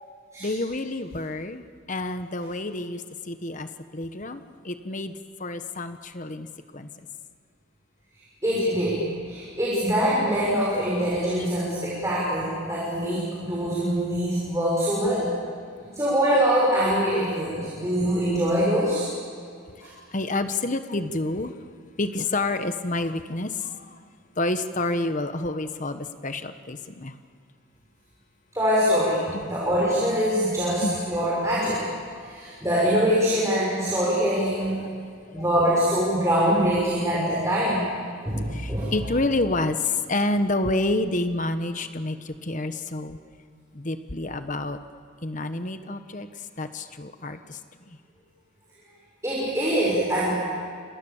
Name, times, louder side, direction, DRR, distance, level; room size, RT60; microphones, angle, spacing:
voice 1, 0.4-6.5 6.7-6.9 20.1-21.6 22.0-24.0 24.4-27.1 29.3-29.5 30.8-31.0 35.3-35.4 38.5-43.2 43.7-44.8 45.2-47.6 47.9-48.0, left 2 dB, 35° left, 9 dB, 1.2 m, -29 dB
voice 2, 8.4-15.3 15.9-19.0 19.8-19.9 28.5-31.8 32.1-34.9 35.3-37.8 38.2-39.0 49.2-50.3, equal, 15° right, -6 dB, 6.3 m, -24 dB
29.5 x 27.0 x 7.3 m, 2.2 s
head